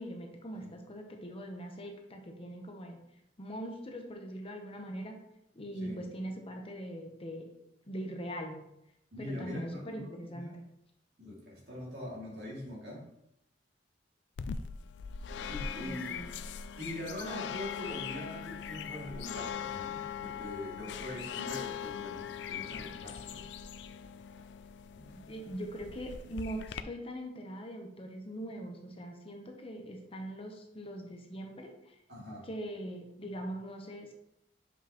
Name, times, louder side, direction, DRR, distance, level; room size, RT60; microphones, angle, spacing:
voice 1, 0.0-3.0 3.4-5.2 5.5-7.5 7.8-8.6 9.2-10.6 15.8-16.3 22.3-22.4 25.0-32.0 32.4-34.1, right 1 dB, 35° left, 3 dB, 0.9 m, -42 dB
voice 2, 9.1-10.5 11.2-13.0 15.4-16.2 16.8-23.5 32.1-32.5, left 1 dB, 70° right, -4 dB, 2.5 m, -43 dB
sound 1, 14.4-26.8, left 7 dB, 85° left, 0.4 m, -41 dB
7.2 x 5.3 x 3.0 m, 0.82 s
head